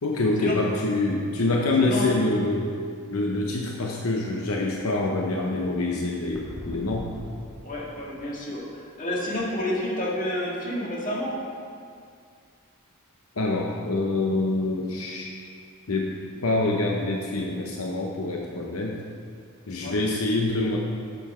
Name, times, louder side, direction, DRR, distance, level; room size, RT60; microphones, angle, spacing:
voice 1, 0.0-2.7 3.1-7.1 13.4-15.3 15.9-16.1 16.4-19.0 19.7-20.8, left 2 dB, 75° left, 0 dB, 0.8 m, -25 dB
sound 1, 6.3-9.4 9.6-9.8 10.3-10.4 15.0-15.1, equal, 5° left, 1.3 m, -43 dB
voice 2, 7.6-11.3 19.8-20.0, left 1 dB, 35° left, -5 dB, 1.9 m, -29 dB
10.5 x 7.0 x 4.3 m, 2.2 s
head